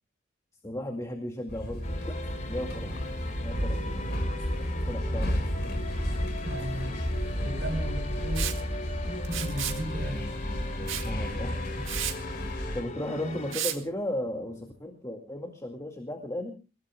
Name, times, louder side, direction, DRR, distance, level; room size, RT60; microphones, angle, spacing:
voice 1, 0.6-2.2 2.5-3.0 3.4-4.1 4.9-5.4 11.0-11.9 12.7-16.6, left 1 dB, 15° left, 3 dB, 2.1 m, -35 dB
sound 1, 1.5-12.8, equal, 60° left, 5.8 m, -32 dB
sound 2, 1.8-13.5, left 2 dB, 40° left, 2.7 m, -40 dB
voice 2, 6.3-7.1 7.4-8.7 9.0-10.3 13.1-13.4, right 1 dB, 70° right, 3 dB, 6.8 m, -36 dB
Liquid, 8.4-8.6 9.3-9.8 10.9-11.1 11.5-11.6 11.9-12.2 13.5-13.8, right 11 dB, 85° right, 1.9 m, -32 dB
29.5 x 17.5 x 2.3 m, 0.32 s
head